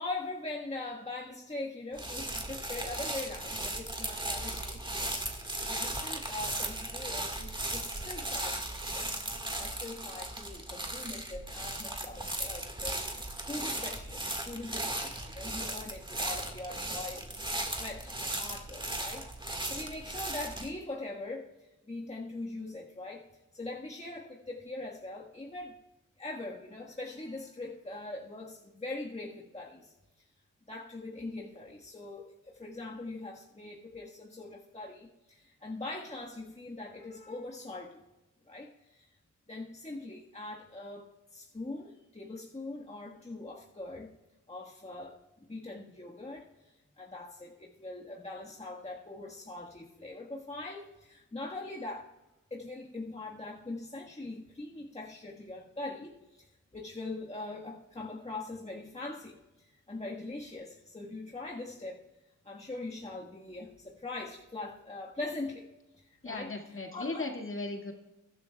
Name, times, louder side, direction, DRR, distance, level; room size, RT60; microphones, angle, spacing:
voice 1, 0.0-5.1 5.7-9.1 9.6-13.0 13.5-17.3 17.7-21.5 21.9-23.2 23.5-25.8 26.2-29.9 30.7-38.0 38.5-39.1 39.5-44.1 44.5-46.5 47.0-52.1 52.5-62.0 62.4-65.7 66.0-67.3, left 2 dB, 20° left, -2 dB, 1.6 m, -42 dB
sound 1, 1.9-20.7, right 1 dB, 15° right, 1.8 m, -37 dB
voice 2, 66.2-67.9, left 2 dB, 40° left, 2 dB, 2.1 m, -37 dB
22.0 x 11.5 x 2.3 m, 0.98 s
cardioid pair, 60°, 32 cm